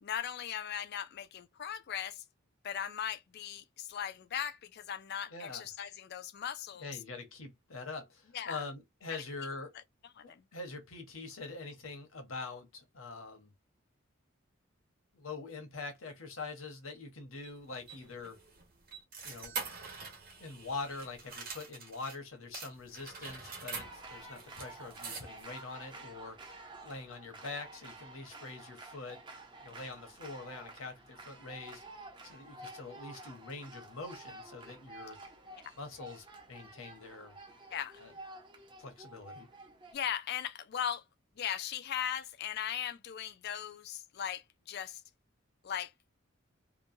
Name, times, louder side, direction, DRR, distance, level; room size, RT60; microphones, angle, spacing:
voice 1, 0.0-2.2 2.6-6.9 8.3-8.6 9.1-9.2 10.2-10.4 37.7-38.0 39.9-41.0 41.4-45.0 45.6-45.9, left 9 dB, 50° left, 0.4 m, -38 dB
voice 2, 5.3-5.7 6.8-9.7 10.2-13.5 15.1-18.4 19.2-19.5 20.4-29.2 29.6-31.8 32.2-35.2 35.7-37.4 38.0-38.1 38.8-39.5, left 3 dB, 75° left, 1.0 m, -44 dB
sound 1, 17.4-22.2 22.5-25.6, right 4 dB, 45° right, 1.2 m, -45 dB
sound 2, 23.8-39.9, right 2 dB, 20° right, 0.6 m, -51 dB
3.0 x 2.2 x 2.6 m
head